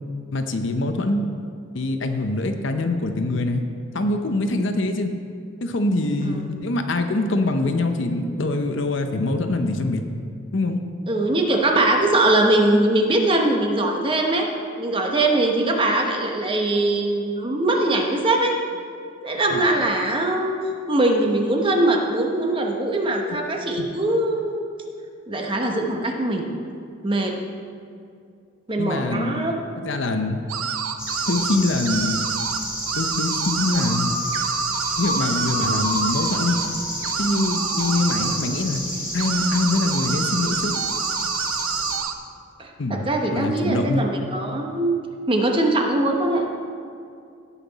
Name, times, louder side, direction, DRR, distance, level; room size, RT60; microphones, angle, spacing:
voice 1, 0.3-1.2 1.7-3.6 3.9-5.1 5.6-10.0 10.5-10.8 19.5-19.6 23.8-23.9 28.8-29.5 29.8-30.4 31.3-32.3 32.9-34.1 35.0-36.6 37.2-38.8 39.1-40.7 42.8-44.0, left 2 dB, 60° left, 6 dB, 0.7 m, -24 dB
voice 2, 11.1-14.5 14.8-18.6 19.2-20.6 20.9-24.6 25.3-26.4 27.0-27.4 28.7-29.5 42.6-45.0 45.3-46.4, right 2 dB, 25° right, 1 dB, 0.9 m, -21 dB
sound 1, 30.5-31.6 31.9-32.6 32.9-36.7 37.0-38.4 39.2-42.1, right 7 dB, 90° right, 0.6 m, -28 dB
Common grasshopper warbler singing, 31.0-42.0, equal, 5° right, 2.5 m, -30 dB
sound 2, 33.8-38.4, left 1 dB, 35° left, 1.3 m, -31 dB
17.0 x 5.8 x 4.1 m, 2.4 s
head